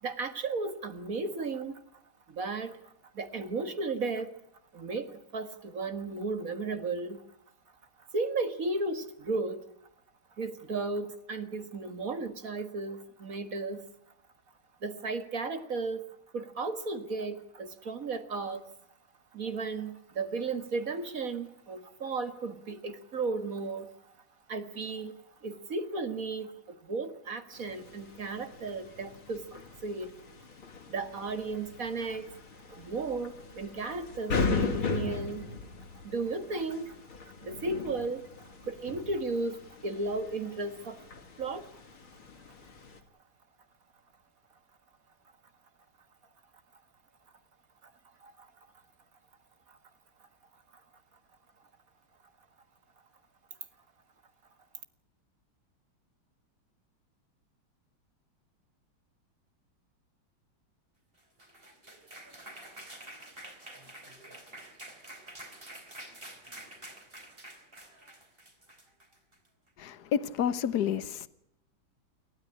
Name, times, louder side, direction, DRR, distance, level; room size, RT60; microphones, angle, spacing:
voice 1, 0.0-1.8 2.3-4.4 4.7-7.3 8.0-9.7 10.4-13.9 14.8-16.1 16.3-18.7 19.3-24.1 24.5-25.2 25.4-30.2 30.9-32.3 32.7-35.5 36.0-41.1 41.4-41.8 47.8-47.9 48.2-48.5 49.7-49.8, right 3 dB, 45° right, 2.0 m, -35 dB
sound 1, 27.5-43.0, left 4 dB, 85° left, 3.6 m, -38 dB
sound 2, 61.2-69.5, right 1 dB, 25° right, 4.5 m, -48 dB
voice 2, 69.8-71.3, left 8 dB, 55° left, 1.6 m, -30 dB
29.0 x 13.0 x 9.9 m
omnidirectional pair, 2.2 m